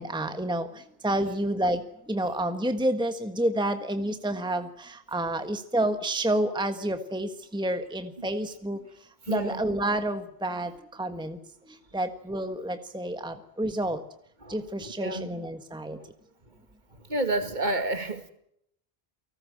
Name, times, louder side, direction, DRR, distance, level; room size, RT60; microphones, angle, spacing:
voice 1, 0.0-8.8 9.3-11.4 11.7-14.0 14.5-16.0, right 1 dB, 5° right, 8 dB, 1.4 m, -29 dB
voice 2, 9.3-9.6 14.4-15.3 16.0-16.1 17.1-18.3, right 2 dB, 50° right, 8 dB, 2.4 m, -30 dB
29.0 x 19.5 x 7.7 m, 0.73 s
omnidirectional pair, 1.0 m